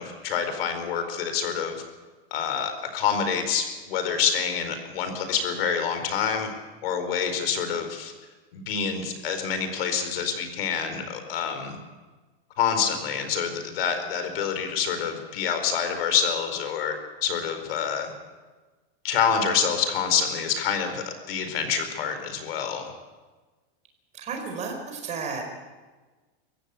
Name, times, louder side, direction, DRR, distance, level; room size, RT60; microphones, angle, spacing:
voice 1, 0.0-1.8 2.3-6.5 6.8-8.1 8.5-11.8 12.6-17.0 17.2-18.1 19.0-22.9, left 7 dB, 70° left, 8 dB, 4.7 m, -27 dB
voice 2, 24.1-25.4, right 5 dB, 25° right, 3 dB, 4.6 m, -33 dB
23.0 x 16.0 x 8.4 m, 1.3 s
supercardioid pair, 165°, 30 cm